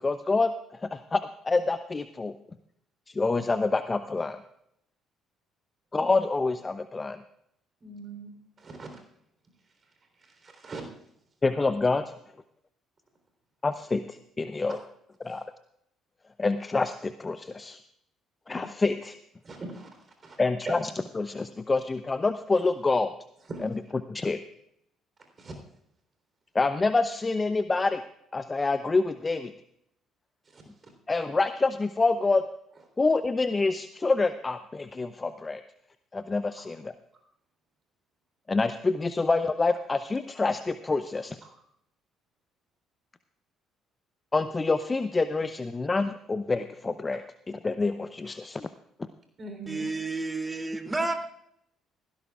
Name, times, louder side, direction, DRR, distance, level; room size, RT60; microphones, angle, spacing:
voice 1, 0.0-0.5 0.8-2.3 3.1-4.4 5.9-7.2 11.4-12.0 13.6-14.8 15.2-15.4 16.4-17.8 18.5-19.2 20.4-23.1 23.6-23.7 24.1-24.4 26.5-28.0 28.3-29.5 31.1-32.4 33.0-35.6 36.1-36.9 38.5-41.4 44.3-48.7, left 3 dB, 25° left, 0.7 m, -27 dB
voice 2, 7.8-8.3 8.6-8.9 10.4-10.8 18.5-18.7 19.4-19.9 20.2-20.4 23.5-23.6 25.4-25.5 30.5-30.6 49.4-49.9, right 3 dB, 40° right, 3.6 m, -41 dB
voice 3, 49.7-51.1, right 3 dB, 20° right, 2.7 m, -30 dB
17.0 x 16.0 x 2.4 m
hypercardioid pair, 50°, 0 cm